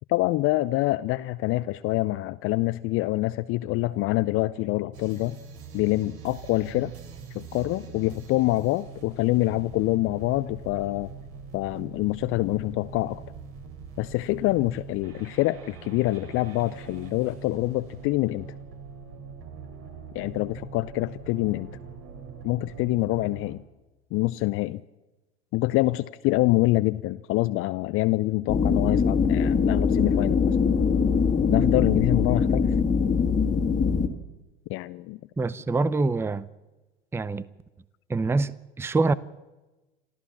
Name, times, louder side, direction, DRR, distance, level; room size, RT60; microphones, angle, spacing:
voice 1, 0.1-5.4 5.7-6.9 7.3-11.1 11.5-13.2 14.0-18.5 20.1-21.7 22.4-23.6 24.1-24.8 25.5-30.6 31.5-32.7 34.7-35.2, left 18 dB, 40° left, 0.6 m, -26 dB
sound 1, 4.9-23.6, right 5 dB, 45° right, 3.2 m, -43 dB
sound 2, 28.5-34.1, left 5 dB, 25° left, 2.0 m, -22 dB
voice 2, 35.4-36.5 37.1-37.5 38.1-39.1, right 3 dB, 5° right, 0.6 m, -25 dB
27.0 x 14.0 x 7.3 m
figure-of-eight pair, 80°, 33 cm